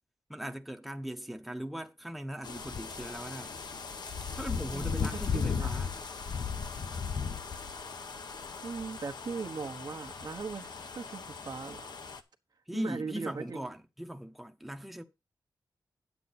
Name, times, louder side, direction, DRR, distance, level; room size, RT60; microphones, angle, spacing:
voice 1, 0.3-3.6 4.4-5.9 12.7-15.0, right 1 dB, ahead, 0.9 m, -39 dB
sound 1, 2.4-12.2, left 6 dB, 65° left, 0.9 m, -37 dB
voice 2, 4.7-5.8 8.6-12.0 12.7-13.7, right 5 dB, 65° right, 1.1 m, -39 dB
9.2 x 8.3 x 4.1 m
wide cardioid pair, 85°, 8 cm